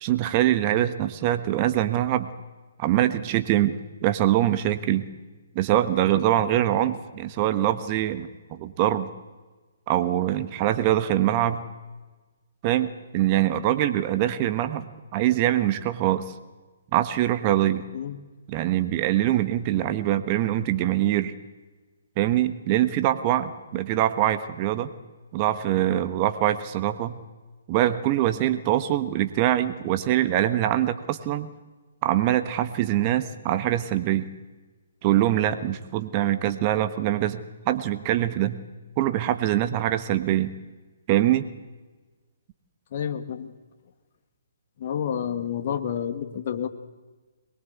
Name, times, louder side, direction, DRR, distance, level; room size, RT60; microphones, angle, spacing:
voice 1, 0.0-2.3 2.8-5.1 5.5-9.1 9.9-11.6 12.6-14.9 15.1-16.3 16.9-17.8 18.5-21.3 22.2-24.9 25.3-27.2 27.7-31.5 32.0-34.3 35.0-38.6 39.0-40.5 41.1-41.5, right 13 dB, 30° right, 11 dB, 1.4 m, -23 dB
voice 2, 42.9-43.5 44.8-46.7, left 8 dB, 45° left, 7 dB, 1.8 m, -29 dB
23.0 x 21.5 x 8.2 m, 1.3 s
figure-of-eight pair, 135°, 0 cm